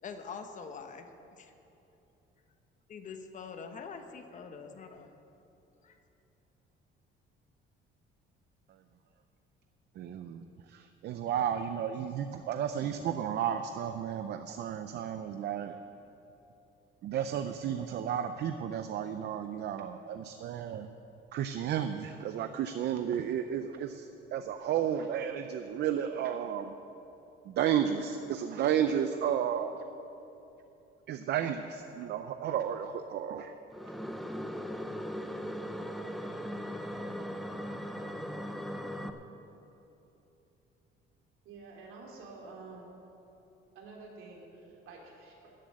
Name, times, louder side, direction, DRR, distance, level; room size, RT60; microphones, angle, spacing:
voice 1, 0.0-1.1 1.4-1.5 2.9-5.1 5.8-6.0, left 5 dB, 35° left, 6 dB, 0.9 m, -44 dB
voice 2, 10.0-10.4 10.7-15.7 17.0-20.9 21.3-26.7 27.5-29.8 31.1-33.5, right 9 dB, 55° right, 8 dB, 0.5 m, -32 dB
sound 1, 33.7-39.1, equal, ahead, 0.5 m, -38 dB
voice 3, 41.4-42.9 43.7-45.5, right 3 dB, 80° right, -1 dB, 3.1 m, -49 dB
13.5 x 7.6 x 8.6 m, 2.9 s
cardioid pair, 170°, 21 cm